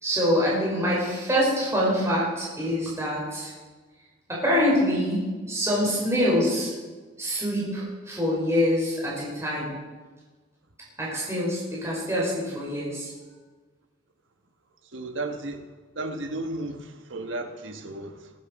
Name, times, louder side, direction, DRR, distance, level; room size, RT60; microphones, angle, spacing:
voice 1, 0.0-3.5 4.3-6.7 7.2-9.7 11.0-13.1, equal, 15° right, -6 dB, 5.1 m, -25 dB
voice 2, 14.9-15.7 15.9-18.3, right 2 dB, 70° right, 6 dB, 1.5 m, -34 dB
20.0 x 9.7 x 5.3 m, 1.3 s
head